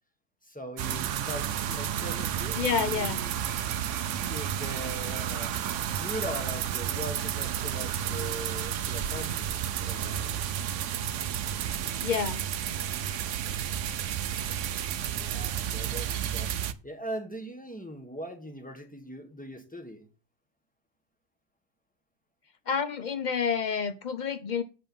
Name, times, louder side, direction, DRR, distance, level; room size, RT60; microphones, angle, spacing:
voice 1, 0.4-3.4 4.3-5.6 5.9-9.5 9.9-10.5 15.0-20.0, equal, 5° left, 1.4 m, -40 dB
sound 1, 0.8-16.7, right 9 dB, 65° right, 0.9 m, -31 dB
voice 2, 2.6-3.2 12.0-12.4 22.7-24.6, left 6 dB, 80° left, 0.4 m, -29 dB
7.8 x 5.4 x 7.0 m
omnidirectional pair, 1.7 m